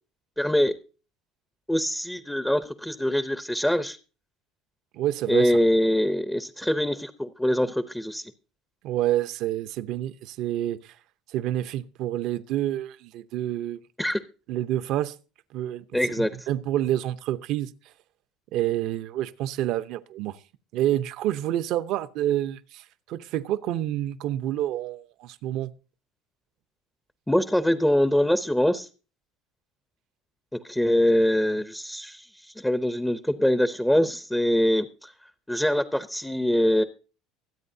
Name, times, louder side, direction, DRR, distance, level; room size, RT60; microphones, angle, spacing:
voice 1, 0.4-0.7 1.7-4.0 5.3-8.3 14.0-14.2 15.9-16.5 27.3-28.9 30.5-35.1 35.5-36.8, left 1 dB, 5° left, 0.6 m, -24 dB
voice 2, 4.9-5.5 8.8-10.9 11.3-13.8 14.5-15.1 15.5-15.8 16.2-17.7 18.5-20.4 20.7-25.7 31.5-31.6, right 13 dB, 60° right, 0.7 m, -28 dB
23.5 x 8.4 x 2.7 m
cardioid pair, 125°, 0 cm